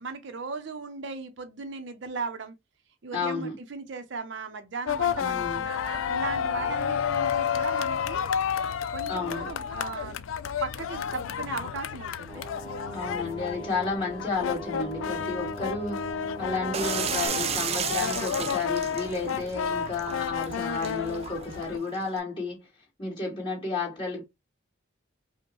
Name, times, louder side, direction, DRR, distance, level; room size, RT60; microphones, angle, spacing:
voice 1, 0.0-2.5 3.0-8.3 8.9-10.3 10.6-12.4, right 4 dB, 65° right, 0.6 m, -37 dB
voice 2, 3.1-3.5 5.2-5.7 9.1-9.5 12.9-16.0 16.4-22.7 23.0-24.2, left 4 dB, 25° left, 2.1 m, -32 dB
sound 1, 4.9-21.8, left 7 dB, 90° left, 0.4 m, -31 dB
sound 2, 12.3-17.3, equal, 5° right, 1.0 m, -41 dB
sound 3, 16.7-22.2, right 7 dB, 30° right, 0.3 m, -34 dB
5.1 x 2.1 x 3.0 m
head